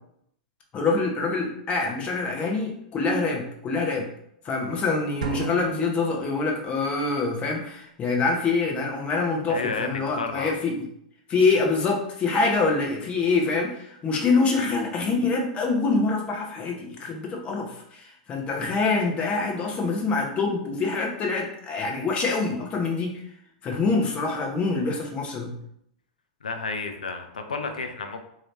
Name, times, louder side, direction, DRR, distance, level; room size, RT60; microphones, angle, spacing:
voice 1, 0.7-4.1 4.4-10.8 11.3-23.2 23.6-25.5, left 3 dB, 30° left, 1 dB, 0.8 m, -25 dB
sound 1, 5.2-6.9, right 3 dB, 80° right, 0.6 m, -35 dB
voice 2, 9.5-9.9 10.1-10.5 26.4-28.3, left 4 dB, 80° left, 6 dB, 0.5 m, -31 dB
3.0 x 2.8 x 3.2 m, 0.74 s
hypercardioid pair, 100°, 4 cm